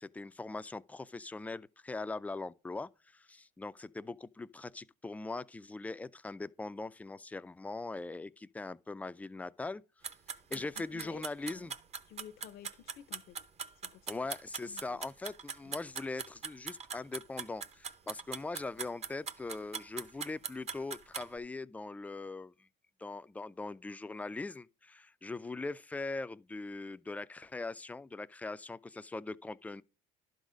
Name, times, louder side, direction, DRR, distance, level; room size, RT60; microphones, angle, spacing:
voice 1, 0.0-9.8 10.5-11.7 14.1-22.7 23.0-29.8, left 3 dB, 10° left, 0.3 m, -41 dB
sound 1, 10.0-21.3, right 6 dB, 35° right, 0.8 m, -41 dB
voice 2, 10.5-11.7 12.0-13.4 13.8-14.2 14.7-15.0 15.6-15.7, left 10 dB, 65° left, 0.7 m, -53 dB
11.5 x 4.0 x 6.2 m
supercardioid pair, 95°, 18 cm